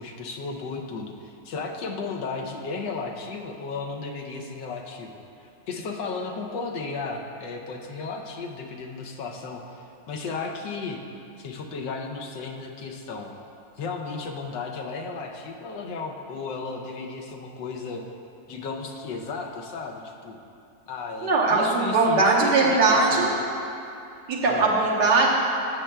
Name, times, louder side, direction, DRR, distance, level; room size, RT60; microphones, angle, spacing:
voice 1, 0.0-11.0 11.4-13.3 13.8-18.0 18.5-20.4 20.9-23.4 24.5-24.7, left 4 dB, 90° left, 2 dB, 1.4 m, -34 dB
voice 2, 21.2-23.3 24.3-25.3, right 3 dB, 70° right, -4 dB, 1.7 m, -20 dB
13.0 x 7.3 x 2.3 m, 2.7 s
omnidirectional pair, 1.9 m